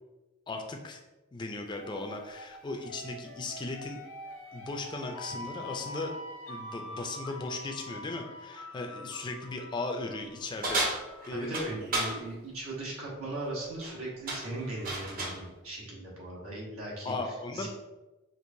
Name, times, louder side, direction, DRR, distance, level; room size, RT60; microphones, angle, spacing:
voice 1, 0.5-1.0 1.3-4.0 4.5-6.1 6.5-10.8 11.3-11.6 17.0-17.7, left 2 dB, 20° left, 3 dB, 0.3 m, -37 dB
sound 1, 1.7-11.4, left 1 dB, 70° left, 0.6 m, -45 dB
sound 2, 10.6-12.2 13.6-13.9 14.3-15.4, right 2 dB, 45° right, 0.7 m, -32 dB
voice 2, 11.3-17.1 17.5-17.7, right 2 dB, 90° right, -4 dB, 1.2 m, -38 dB
4.5 x 2.5 x 2.6 m, 1.1 s
head